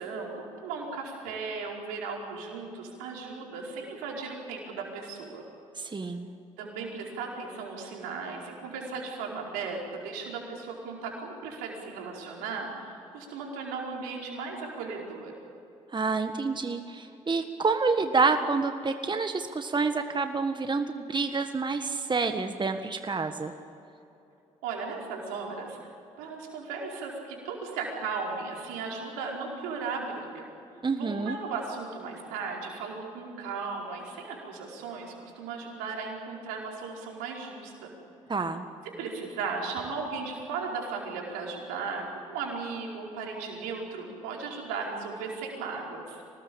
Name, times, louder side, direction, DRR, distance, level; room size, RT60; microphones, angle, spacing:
voice 1, 0.0-5.4 6.6-15.3 24.6-30.5 31.0-37.9 39.0-46.2, right 4 dB, 85° right, -1 dB, 4.9 m, -36 dB
voice 2, 5.8-6.3 15.9-23.5 30.8-31.3 38.3-38.7, right 4 dB, 30° right, 7 dB, 1.6 m, -28 dB
25.0 x 19.5 x 8.8 m, 2.8 s
hypercardioid pair, 50°, 15 cm